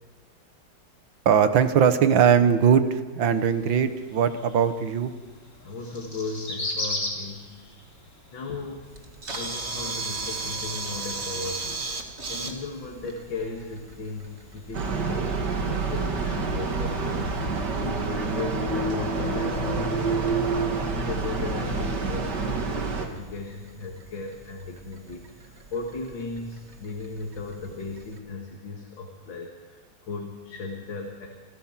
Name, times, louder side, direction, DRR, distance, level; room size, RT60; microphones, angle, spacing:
voice 1, 1.3-5.1, right 7 dB, 80° right, 11 dB, 1.9 m, -20 dB
sound 1, 3.2-17.5, left 1 dB, 40° left, 4.1 m, -41 dB
voice 2, 5.6-7.5 8.3-8.8 9.3-11.8 12.3-15.4 15.7-17.5 17.8-20.4 20.9-31.3, left 3 dB, 75° left, 1 dB, 2.8 m, -37 dB
Camera, 8.9-28.2, right 3 dB, 35° right, 2.1 m, -39 dB
sound 2, 14.7-23.1, right 3 dB, 60° right, 2.5 m, -27 dB
27.5 x 15.5 x 7.4 m, 1.4 s
omnidirectional pair, 2.1 m